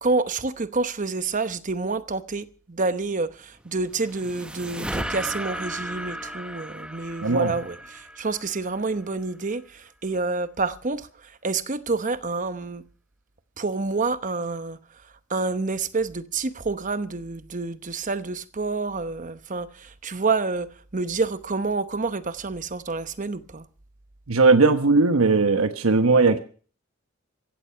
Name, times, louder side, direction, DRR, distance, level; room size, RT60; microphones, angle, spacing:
voice 1, 0.0-11.1 11.4-12.8 13.6-14.8 15.3-23.6, right 3 dB, 35° right, 0.9 m, -28 dB
sound 1, 3.6-9.0, right 1 dB, 5° right, 0.9 m, -35 dB
voice 2, 7.2-7.6 24.3-26.4, right 3 dB, 85° right, 1.1 m, -18 dB
16.0 x 14.0 x 5.7 m
head